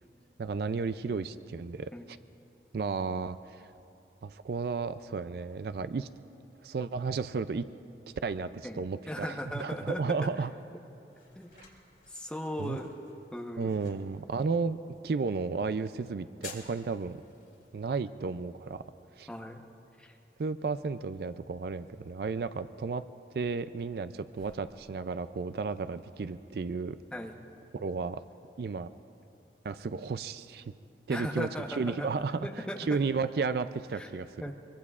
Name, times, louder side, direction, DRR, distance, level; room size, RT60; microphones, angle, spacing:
voice 1, 0.4-2.2 2.7-3.6 4.2-6.1 6.6-7.6 8.2-10.5 11.5-11.6 12.6-12.8 13.6-14.8 15.0-17.2 17.7-18.8 19.2-19.3 20.4-23.0 23.3-27.0 27.7-28.2 28.6-28.9 29.6-30.7 31.1-32.5 32.9-34.4, right 4 dB, 60° right, 12 dB, 0.4 m, -33 dB
voice 2, 8.6-10.3 11.4-11.5 12.1-12.9 13.3-13.8 19.3-19.6 20.0-20.1 27.1-27.4 31.1-32.1 32.4-32.8 33.9-34.1 34.4-34.5, equal, 5° left, 0 dB, 0.9 m, -37 dB
sound 1, 10.4-28.0, left 5 dB, 50° left, 3.1 m, -58 dB
24.0 x 23.5 x 2.4 m, 2.7 s
head